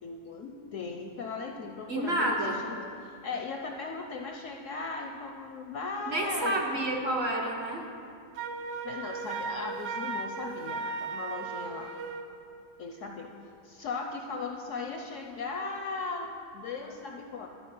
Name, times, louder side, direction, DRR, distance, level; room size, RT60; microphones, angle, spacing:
voice 1, 0.0-6.8 8.8-11.9 12.8-13.3 13.6-17.5, left 4 dB, 70° left, 2 dB, 0.7 m, -38 dB
voice 2, 1.9-2.6 6.1-7.8, right 1 dB, 50° right, -1 dB, 0.9 m, -29 dB
Wind instrument woodwind instrument, 8.4-12.3, right 4 dB, 80° right, 1.2 m, -36 dB
12.0 x 4.4 x 5.3 m, 2.5 s
omnidirectional pair, 1.7 m